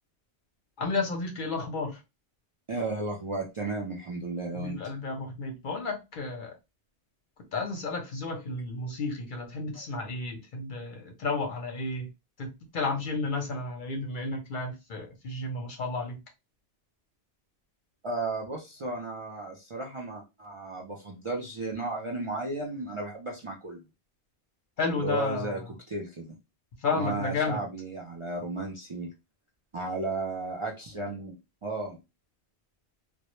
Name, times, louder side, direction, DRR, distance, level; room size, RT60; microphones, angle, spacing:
voice 1, 0.8-2.0 4.5-6.5 7.5-12.1 12.4-16.2 24.8-25.5 26.8-27.6, left 3 dB, 55° left, 0.6 m, -32 dB
voice 2, 2.7-4.8 18.0-23.8 24.8-25.6 25.9-26.4 26.9-29.1 29.7-31.3 31.6-32.0, right 2 dB, 55° right, 0.3 m, -34 dB
2.1 x 2.0 x 2.9 m
omnidirectional pair, 1.1 m